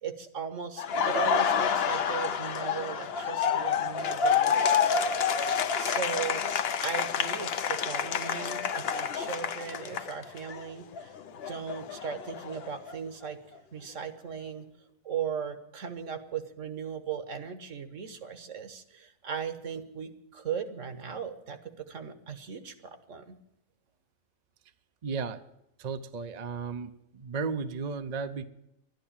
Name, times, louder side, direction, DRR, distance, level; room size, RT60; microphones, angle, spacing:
voice 1, 0.0-6.5 6.8-13.4 13.7-14.7 15.0-23.4, right 6 dB, 65° right, 9 dB, 1.4 m, -38 dB
Laughter, 0.8-10.6 10.9-13.0, left 6 dB, 55° left, 0.8 m, -28 dB
voice 2, 25.0-25.4 25.8-28.4, right 5 dB, 45° right, 10 dB, 0.5 m, -34 dB
12.0 x 10.5 x 8.7 m, 0.82 s
omnidirectional pair, 1.4 m